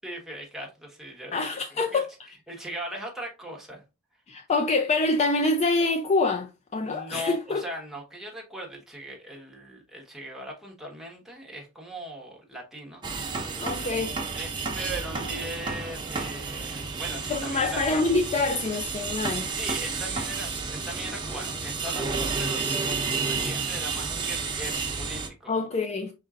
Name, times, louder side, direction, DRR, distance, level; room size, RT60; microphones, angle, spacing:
voice 1, 0.0-1.4 1.7-2.0 2.5-3.8 6.8-13.0 14.3-17.8 19.6-25.7, right 1 dB, ahead, 1.2 m, -39 dB
voice 2, 1.3-2.1 4.3-7.6 13.6-14.1 17.3-19.5 25.5-26.1, left 3 dB, 30° left, 0.4 m, -26 dB
sound 1, 13.0-25.3, right 4 dB, 20° right, 0.9 m, -31 dB
5.3 x 3.9 x 2.4 m
head